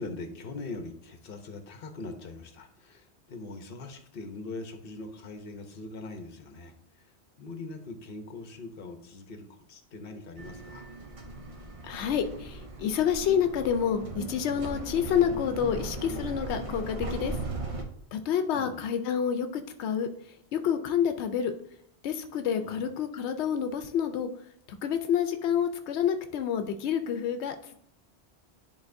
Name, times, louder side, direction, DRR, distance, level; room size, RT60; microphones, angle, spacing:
voice 1, 0.0-10.9 18.5-18.8 22.6-22.8, left 3 dB, 60° left, 7 dB, 1.0 m, -42 dB
sound 1, 10.4-17.8, right 2 dB, 35° right, 0.7 m, -38 dB
voice 2, 11.8-17.4 18.1-20.1 20.5-21.5 22.0-24.3 24.8-27.7, left 8 dB, 90° left, 8 dB, 0.9 m, -28 dB
10.5 x 3.7 x 2.6 m, 0.68 s
omnidirectional pair, 1.1 m